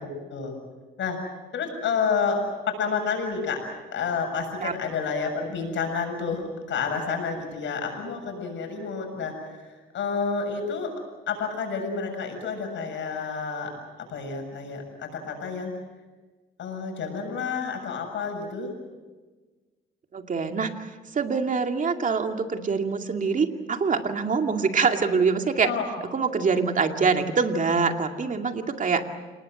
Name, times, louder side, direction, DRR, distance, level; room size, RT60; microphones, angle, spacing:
voice 1, 1.5-2.4 2.7-3.6 3.9-10.9 11.3-13.7 14.0-15.7 16.6-18.7 25.6-25.8, left 5 dB, 70° left, 4 dB, 7.4 m, -29 dB
voice 2, 20.1-25.7 26.1-29.0, right 5 dB, 40° right, 5 dB, 2.4 m, -24 dB
28.5 x 19.5 x 7.8 m, 1.3 s
cardioid pair, 90°, 20 cm